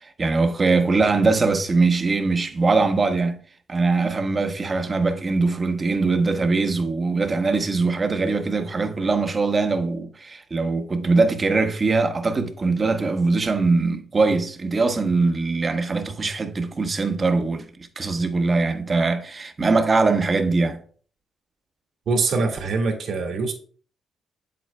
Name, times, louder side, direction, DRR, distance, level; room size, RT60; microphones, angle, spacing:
voice 1, 0.0-20.8, right 3 dB, 30° right, 1.0 m, -22 dB
voice 2, 22.1-23.5, right 3 dB, 65° right, 1.9 m, -23 dB
7.9 x 7.7 x 2.2 m
cardioid pair, 90°, 0 cm